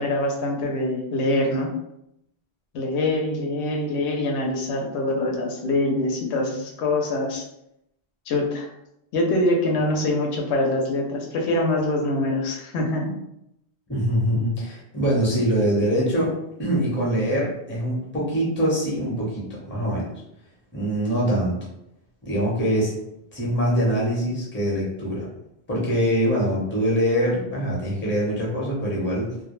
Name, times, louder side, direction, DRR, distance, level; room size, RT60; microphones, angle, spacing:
voice 1, 0.0-1.7 2.7-7.4 8.3-8.7 9.1-13.2, left 1 dB, 85° left, 0 dB, 0.9 m, -24 dB
voice 2, 13.9-16.3 16.6-20.1 20.7-21.6 22.2-23.0 23.3-25.3 25.7-29.3, equal, 10° left, -5 dB, 0.7 m, -23 dB
2.2 x 2.1 x 3.0 m, 0.80 s
omnidirectional pair, 1.1 m